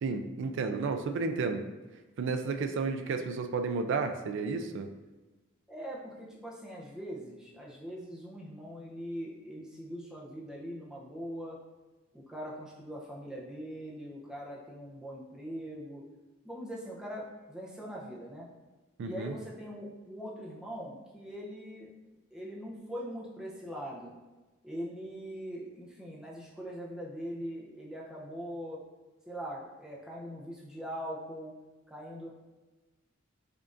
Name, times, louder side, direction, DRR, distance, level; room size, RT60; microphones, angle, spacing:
voice 1, 0.0-1.7 2.2-4.9 19.0-19.4, right 4 dB, 60° right, 7 dB, 0.3 m, -32 dB
voice 2, 5.7-11.6 12.1-16.0 16.4-18.5 19.0-21.9 22.3-24.2 24.6-28.8 29.3-31.5 31.9-32.3, equal, 5° right, -4 dB, 0.6 m, -41 dB
5.1 x 2.5 x 2.5 m, 1.2 s
head